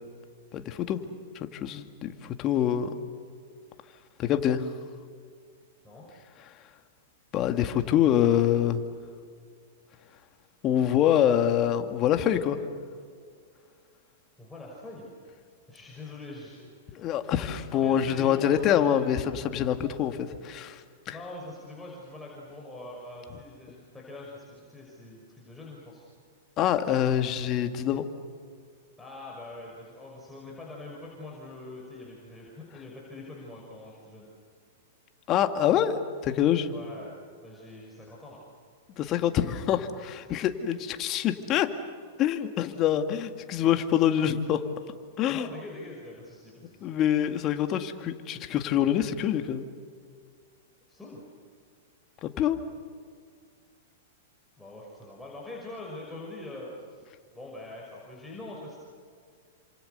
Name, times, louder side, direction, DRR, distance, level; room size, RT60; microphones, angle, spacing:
voice 1, 0.5-1.0 1.3-3.0 4.2-4.7 6.4-6.6 7.3-8.8 10.6-12.6 16.9-21.2 26.6-28.1 35.3-36.7 39.0-41.7 42.2-44.6 45.2-45.5 46.8-49.7 52.2-52.6, left 10 dB, 35° left, 8 dB, 2.1 m, -25 dB
voice 2, 14.4-15.1 15.7-17.1 17.4-19.0 21.0-26.0 29.0-34.3 36.7-37.2 37.4-38.4 40.3-40.4 45.3-46.8 50.9-51.2 54.6-57.1 57.3-58.8, left 2 dB, 5° left, -4 dB, 6.1 m, -43 dB
29.0 x 27.0 x 6.9 m, 2.1 s
hypercardioid pair, 105°, 0 cm